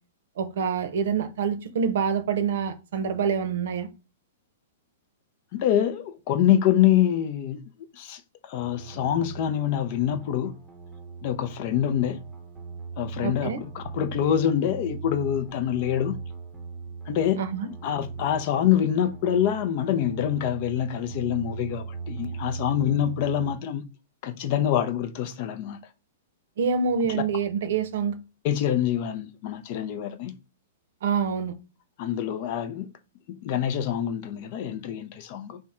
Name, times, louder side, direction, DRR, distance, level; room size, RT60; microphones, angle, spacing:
voice 1, 0.4-3.9 13.2-13.6 17.4-17.7 26.6-28.1 31.0-31.5, right 6 dB, 65° right, 0.7 m, -26 dB
voice 2, 5.5-7.6 7.9-10.5 11.2-12.2 13.0-16.2 17.1-17.4 17.8-23.9 24.2-25.8 27.1-27.2 28.4-30.4 32.0-32.9 33.3-35.6, left 10 dB, 45° left, 0.5 m, -25 dB
sound 1, 8.6-23.5, right 5 dB, 10° right, 0.8 m, -39 dB
3.6 x 2.2 x 4.2 m
hypercardioid pair, 150°, 0 cm